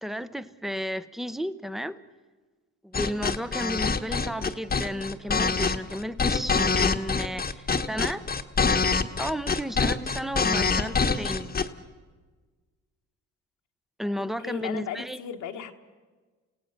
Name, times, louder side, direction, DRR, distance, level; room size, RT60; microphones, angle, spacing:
voice 1, 0.0-2.0 2.8-8.2 9.2-11.5 14.0-15.2, equal, ahead, 14 dB, 0.8 m, -33 dB
sound 1, 2.9-11.7, left 4 dB, 30° left, 1.2 m, -25 dB
voice 2, 14.4-15.7, left 8 dB, 80° left, 4 dB, 1.5 m, -37 dB
29.5 x 17.0 x 6.7 m, 1.4 s
cardioid pair, 90°, 30 cm